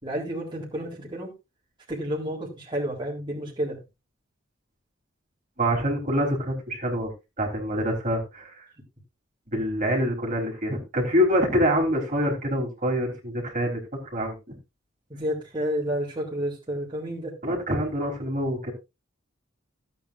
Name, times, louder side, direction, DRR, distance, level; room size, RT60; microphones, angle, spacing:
voice 1, 0.0-1.3 1.9-3.8 15.1-17.3, equal, 25° right, -3 dB, 3.7 m, -30 dB
voice 2, 5.6-7.1 7.4-8.6 9.5-13.8 14.1-14.6 17.4-18.7, equal, 40° right, 0 dB, 3.9 m, -25 dB
16.0 x 8.8 x 2.6 m, 0.26 s
head